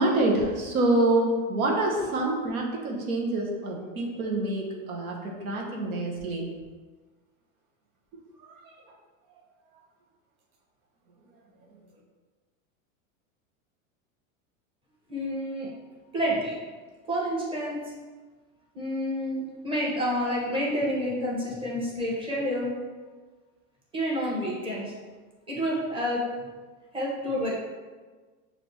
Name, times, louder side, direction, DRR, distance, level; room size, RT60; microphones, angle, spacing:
voice 1, 0.0-6.5 8.4-8.8, right 2 dB, 90° right, -1 dB, 1.1 m, -26 dB
voice 2, 15.1-15.7 16.1-16.6 17.1-17.8 18.7-22.7 23.9-24.9 25.5-26.2 26.9-27.6, equal, 15° right, -6 dB, 1.2 m, -29 dB
6.1 x 2.8 x 3.0 m, 1.4 s
supercardioid pair, 130°, 41 cm